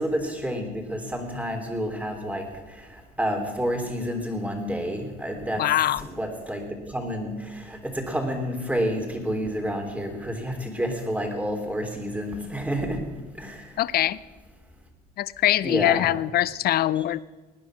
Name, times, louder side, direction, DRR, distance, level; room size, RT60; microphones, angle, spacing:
voice 1, 0.0-5.6 6.0-13.0 13.4-13.8 15.6-16.1 17.0-17.1, equal, 5° right, 4 dB, 3.4 m, -29 dB
voice 2, 5.6-6.0 13.8-14.2 15.2-17.2, left 13 dB, 50° left, 19 dB, 0.6 m, -23 dB
18.5 x 9.8 x 6.3 m, 1.2 s
supercardioid pair, 85°, 20 cm